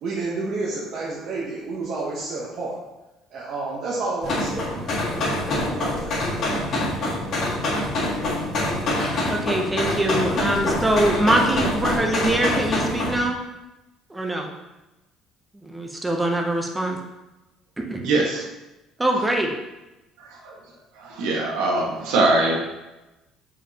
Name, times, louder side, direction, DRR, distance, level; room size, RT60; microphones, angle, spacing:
voice 1, 0.0-2.8 3.3-6.3, right 3 dB, 45° right, -5 dB, 1.0 m, -30 dB
sound 1, 4.2-13.2, left 1 dB, 40° left, 1.8 m, -25 dB
voice 2, 9.3-13.4 14.1-14.5 15.5-17.0 17.9-18.0 19.0-19.5, right 1 dB, 10° right, 2 dB, 0.7 m, -23 dB
voice 3, 18.0-18.4 20.4-20.5 21.0-22.6, right 2 dB, 85° right, -2 dB, 1.5 m, -22 dB
7.2 x 5.0 x 2.9 m, 1.0 s
cardioid pair, 175°, 0 cm